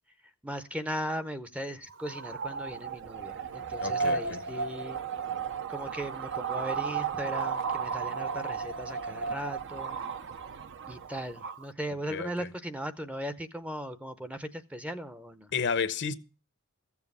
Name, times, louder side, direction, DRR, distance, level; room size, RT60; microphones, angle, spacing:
voice 1, 0.4-5.0 5.7-10.0 10.9-15.5, equal, 5° right, 0.6 m, -38 dB
sound 1, 1.9-11.6, right 5 dB, 55° right, 0.6 m, -34 dB
voice 2, 3.8-4.4 12.1-12.5 15.5-16.1, left 6 dB, 55° left, 0.7 m, -31 dB
15.0 x 7.2 x 5.4 m
head